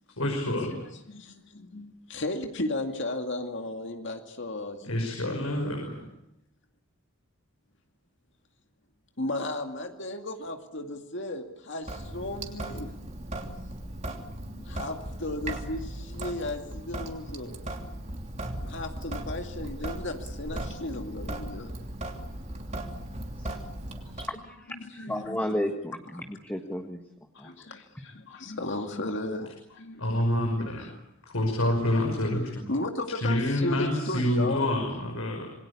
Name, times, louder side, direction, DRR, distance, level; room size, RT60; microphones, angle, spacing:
voice 1, 0.2-0.8 4.8-6.0 30.0-30.9 31.3-32.6 33.2-35.5, left 1 dB, 80° left, 2 dB, 5.9 m, -27 dB
voice 2, 1.1-5.6 9.2-11.9 12.1-12.9 14.3-17.6 18.6-21.7 22.3-22.6 24.8-25.6 27.3-30.2 30.6-30.9 31.9-32.3 32.7-34.8, left 2 dB, 60° left, 4 dB, 2.4 m, -35 dB
Sink (filling or washing) / Drip, 11.8-24.3, right 1 dB, 30° right, 3.1 m, -37 dB
voice 3, 24.2-27.0 27.4-27.5, left 1 dB, 10° left, 4 dB, 1.6 m, -33 dB
27.5 x 22.0 x 8.5 m, 0.78 s
head